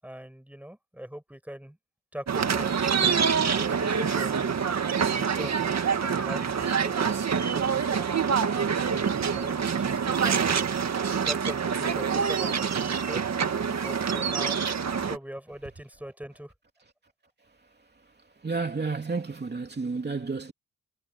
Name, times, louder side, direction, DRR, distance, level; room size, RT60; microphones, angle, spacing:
voice 1, 0.0-1.8 2.1-4.6 5.1-8.0 8.8-10.7 11.2-13.3 13.8-16.5, equal, 5° right, 7.8 m, -41 dB
sound 1, 2.3-15.2, right 6 dB, 55° right, 1.9 m, -26 dB
voice 2, 18.4-20.5, right 4 dB, 30° right, 3.0 m, -31 dB
cardioid pair, 95°, 33 cm